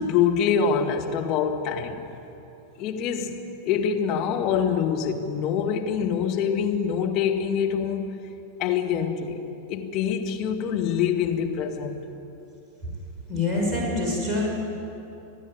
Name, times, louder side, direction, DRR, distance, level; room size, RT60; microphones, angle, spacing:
voice 1, 0.0-2.1 2.8-8.1 8.6-9.4 9.7-12.0, left 7 dB, 40° left, 2 dB, 2.0 m, -25 dB
voice 2, 13.3-14.5, left 2 dB, 10° right, -4 dB, 6.1 m, -25 dB
27.0 x 10.0 x 9.7 m, 2.9 s
figure-of-eight pair, 90°, 0 cm